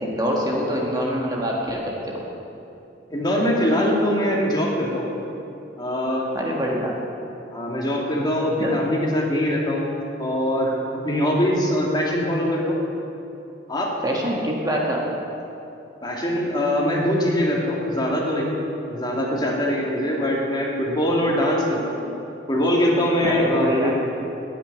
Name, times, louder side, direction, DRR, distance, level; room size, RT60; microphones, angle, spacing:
voice 1, 0.0-2.2 6.3-6.9 8.6-8.7 14.0-15.0 23.2-23.9, equal, 20° right, -2 dB, 1.6 m, -25 dB
voice 2, 3.1-5.1 5.8-6.3 7.5-12.8 13.7-13.9 16.0-18.5 18.9-22.0 22.5-23.9, left 1 dB, 25° left, -2 dB, 2.2 m, -22 dB
9.6 x 9.5 x 9.6 m, 2.7 s
head